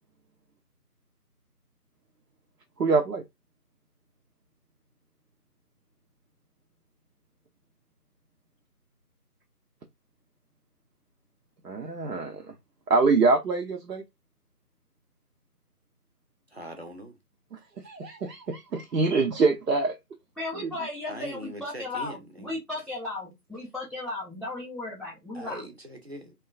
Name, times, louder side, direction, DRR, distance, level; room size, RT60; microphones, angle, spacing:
voice 1, 2.8-3.2 11.6-12.5 12.9-14.0 17.8-20.0 20.6-20.7, right 4 dB, 85° right, 0.7 m, -24 dB
voice 2, 16.5-17.2 21.1-22.6 25.3-26.3, right 1 dB, 45° right, 0.6 m, -41 dB
voice 3, 20.4-25.6, left 2 dB, ahead, 0.5 m, -35 dB
2.9 x 2.2 x 2.3 m
figure-of-eight pair, 170°, 47 cm